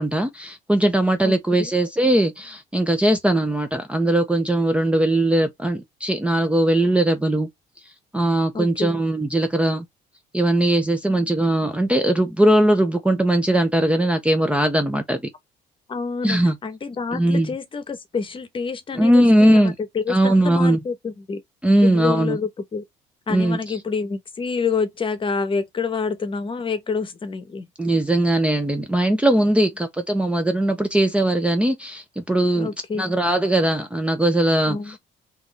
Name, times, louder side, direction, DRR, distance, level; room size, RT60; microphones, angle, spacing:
voice 1, 0.0-7.5 8.1-9.9 10.3-15.2 16.2-16.6 17.1-17.5 19.0-19.7 20.1-20.8 21.6-22.4 23.3-23.8 27.8-32.7 33.0-34.8, right 1 dB, 5° right, 0.6 m, -19 dB
voice 2, 1.2-1.8 8.5-9.0 15.9-21.4 21.8-22.8 23.3-27.7 32.6-33.1 34.7-35.0, left 5 dB, 30° left, 1.0 m, -28 dB
3.7 x 3.1 x 3.8 m
cardioid pair, 110°, 17 cm